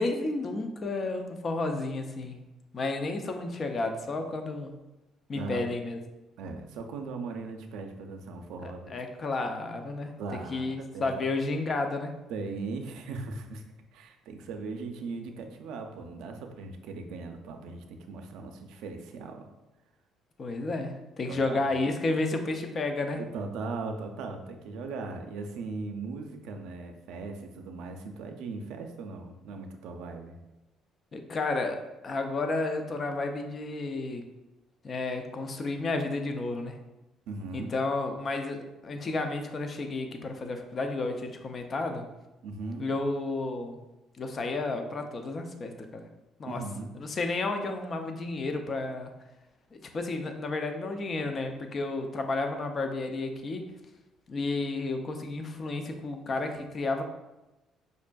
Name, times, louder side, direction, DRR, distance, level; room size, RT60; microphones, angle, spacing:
voice 1, 0.0-2.4 2.7-4.7 5.3-6.0 8.6-10.1 10.5-12.1 20.4-23.2 31.1-34.3 34.8-36.8 37.5-42.1 42.8-43.8 44.2-46.0 46.4-46.6 47.0-49.1 49.7-53.7 54.3-57.0, left 3 dB, 35° left, 5 dB, 0.4 m, -32 dB
voice 2, 6.4-8.9 10.2-11.2 12.3-13.6 13.9-19.4 21.3-21.7 23.2-30.3 37.3-37.7 42.4-42.9 46.4-46.9, right 3 dB, 85° right, 5 dB, 0.4 m, -38 dB
5.1 x 2.5 x 2.2 m, 1.0 s
cardioid pair, 130°, 0 cm